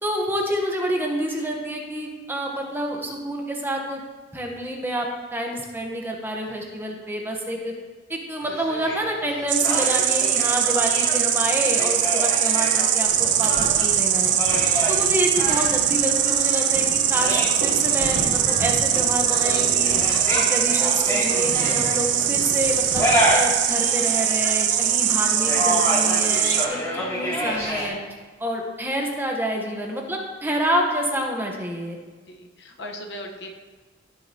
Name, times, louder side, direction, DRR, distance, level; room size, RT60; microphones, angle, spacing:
voice 1, 0.0-4.0 4.3-7.7 8.1-14.4 14.9-19.9 20.3-28.0 28.4-32.0, equal, 10° right, 1 dB, 1.0 m, -28 dB
sound 1, 8.4-27.9, equal, 15° left, 2.5 m, -29 dB
Insect, 9.5-26.7, right 10 dB, 70° right, 0.6 m, -21 dB
sound 2, 13.1-23.7, right 1 dB, 85° right, 1.5 m, -35 dB
voice 2, 21.3-21.9 27.2-27.3 32.3-33.5, equal, 60° left, 2 dB, 1.0 m, -39 dB
15.5 x 6.5 x 2.8 m, 1.3 s
head